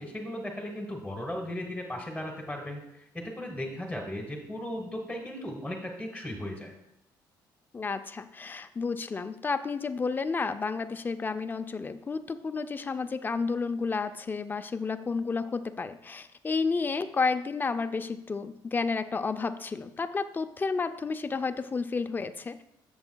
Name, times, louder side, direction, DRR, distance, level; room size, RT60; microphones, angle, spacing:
voice 1, 0.0-6.7, left 1 dB, ahead, 1 dB, 1.2 m, -36 dB
voice 2, 7.7-22.6, left 4 dB, 25° left, 9 dB, 0.5 m, -31 dB
12.5 x 7.1 x 2.3 m, 0.79 s
cardioid pair, 115°, 8 cm